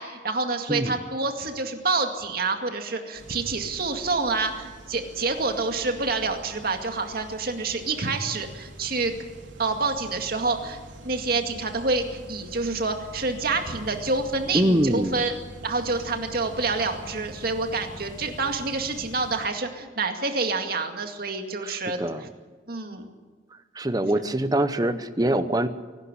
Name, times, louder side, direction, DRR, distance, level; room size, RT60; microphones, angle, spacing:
voice 1, 0.0-9.2 9.6-10.8 11.0-15.3 15.6-22.0 22.7-23.1, right 3 dB, 50° right, 5 dB, 2.2 m, -27 dB
voice 2, 0.7-1.0 14.5-15.2 21.6-22.3 23.7-25.7, right 1 dB, 20° right, 11 dB, 0.9 m, -24 dB
sound 1, 3.1-19.5, right 1 dB, 75° right, 3.2 m, -44 dB
24.0 x 12.0 x 9.9 m, 1.4 s
head